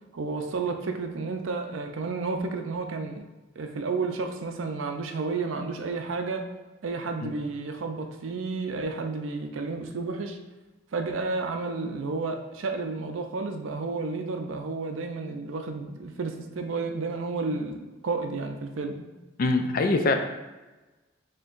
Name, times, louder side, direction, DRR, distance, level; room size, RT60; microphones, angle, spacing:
voice 1, 0.1-3.3 3.6-6.5 6.8-10.4 10.9-19.1, right 3 dB, 75° right, 5 dB, 0.5 m, -31 dB
voice 2, 19.4-20.1, left 3 dB, 45° left, 6 dB, 0.4 m, -23 dB
4.4 x 3.8 x 2.5 m, 1.1 s
head